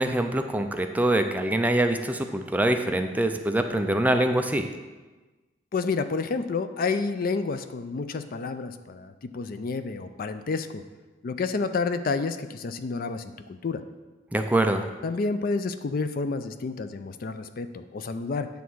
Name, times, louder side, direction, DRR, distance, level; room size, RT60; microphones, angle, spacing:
voice 1, 0.0-4.7 14.3-14.9, right 1 dB, 10° right, 6 dB, 0.4 m, -24 dB
voice 2, 5.7-10.8 11.2-13.8 15.0-18.5, left 4 dB, 50° left, 10 dB, 0.4 m, -29 dB
9.4 x 3.5 x 6.1 m, 1.2 s
head